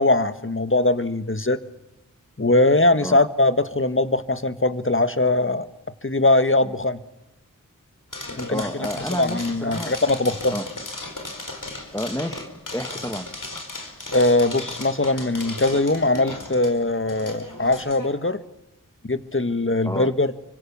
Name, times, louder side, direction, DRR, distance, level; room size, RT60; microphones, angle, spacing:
voice 1, 0.0-1.6 2.4-5.7 6.0-7.0 8.4-8.7 9.1-10.5 14.1-18.4 19.0-20.3, left 2 dB, 40° left, 1.6 m, -21 dB
sound 1, 8.1-18.1, left 2 dB, 70° left, 4.6 m, -36 dB
voice 2, 8.5-9.9 10.5-10.7 11.9-13.3 19.8-20.1, equal, 10° left, 1.6 m, -30 dB
29.0 x 25.0 x 7.1 m
wide cardioid pair, 50°, 33 cm